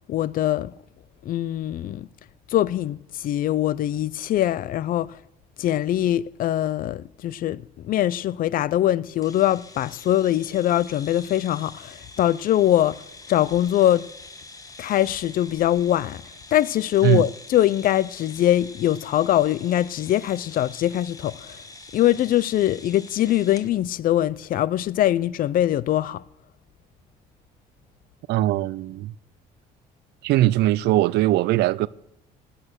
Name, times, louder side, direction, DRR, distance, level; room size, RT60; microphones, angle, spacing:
voice 1, 0.1-0.7 1.2-2.1 2.5-5.2 5.6-13.0 13.3-14.1 14.8-16.2 16.5-21.6 21.9-26.2, left 12 dB, 55° left, 0.5 m, -22 dB
sound 1, 9.2-23.7, left 3 dB, 20° left, 1.4 m, -45 dB
voice 2, 28.3-29.1 30.2-31.9, right 16 dB, 80° right, 0.5 m, -20 dB
18.0 x 8.9 x 6.4 m
cardioid pair, 110°, 17 cm